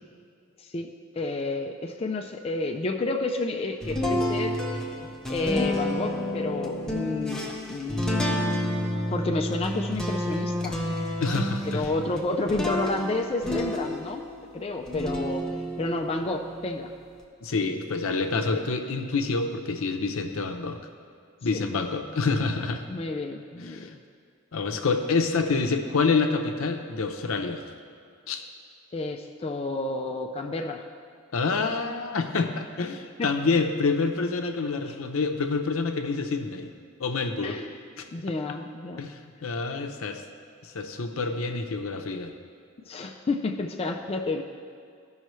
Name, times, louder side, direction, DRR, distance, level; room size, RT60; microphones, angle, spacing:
voice 1, 0.6-0.9 1.1-4.9 5.3-7.4 7.7-8.6 9.1-10.8 11.6-14.3 14.5-16.9 18.5-18.7 21.5-21.7 22.9-24.0 28.9-30.8 33.2-33.3 34.8-35.0 37.4-37.7 38.1-39.0 42.9-44.4, left 2 dB, 30° left, 2 dB, 0.4 m, -30 dB
sound 1, 3.8-14.4 14.9-17.2, left 1 dB, 5° left, 0.8 m, -30 dB
voice 2, 11.2-11.9 17.4-20.8 21.4-22.8 23.6-23.9 24.5-27.6 28.3-28.4 31.3-36.7 37.0-37.6 38.0-38.1 39.0-40.2 40.6-42.3, left 4 dB, 70° left, 5 dB, 0.6 m, -27 dB
14.0 x 5.5 x 3.1 m, 2.3 s
head